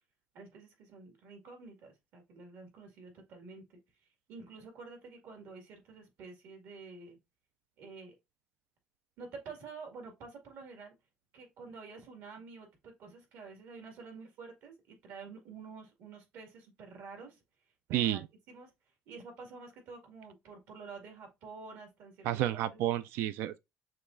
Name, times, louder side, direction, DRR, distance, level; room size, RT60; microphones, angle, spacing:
voice 1, 0.3-3.8 4.3-7.2 7.8-8.2 9.2-10.9 11.3-17.4 17.9-18.2 18.5-18.7 19.1-22.4, right 4 dB, 70° right, 2.0 m, -49 dB
voice 2, 17.9-18.3 22.2-23.6, right 13 dB, 90° right, 0.3 m, -31 dB
6.6 x 3.1 x 2.5 m
cardioid pair, 150°, 4 cm